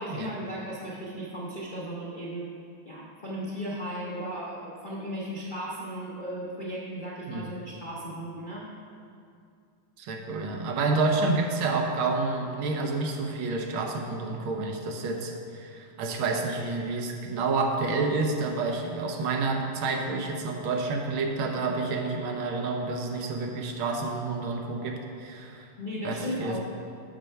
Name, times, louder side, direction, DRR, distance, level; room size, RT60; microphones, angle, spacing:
voice 1, 0.0-2.5 2.9-8.7 25.8-26.6, equal, 50° left, -7 dB, 0.6 m, -36 dB
voice 2, 10.0-25.7 26.0-26.6, right 3 dB, 85° right, 2 dB, 1.7 m, -29 dB
6.7 x 6.5 x 4.4 m, 2.4 s
omnidirectional pair, 2.2 m